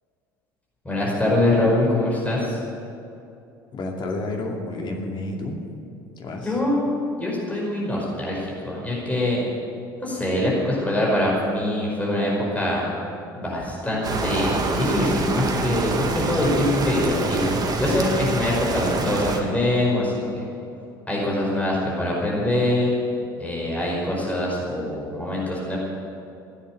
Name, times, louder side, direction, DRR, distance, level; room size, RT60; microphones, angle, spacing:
voice 1, 0.9-2.6 6.4-6.9 7.2-9.4 10.0-12.8 13.4-20.4 21.1-22.9 23.4-25.8, left 1 dB, 10° left, -4 dB, 5.1 m, -24 dB
voice 2, 3.7-5.6 6.2-6.5, left 2 dB, 40° left, 1 dB, 2.5 m, -30 dB
sound 1, 14.0-19.4, right 3 dB, 35° right, 1.8 m, -26 dB
15.5 x 9.9 x 9.2 m, 2.6 s
figure-of-eight pair, 60°, 12 cm